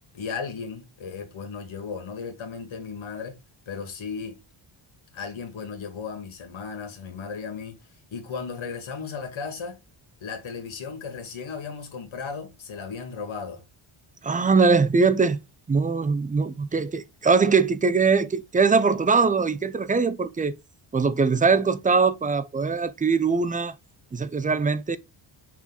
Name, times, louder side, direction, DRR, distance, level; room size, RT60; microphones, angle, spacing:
voice 1, 0.1-3.4 3.7-4.4 5.1-7.8 8.1-9.8 10.2-13.6, left 5 dB, 65° left, 2.1 m, -35 dB
voice 2, 14.2-15.4 15.7-20.6 20.9-23.8 24.1-25.0, right 4 dB, 20° right, 0.3 m, -22 dB
6.0 x 4.3 x 3.7 m
wide cardioid pair, 145°, 50 cm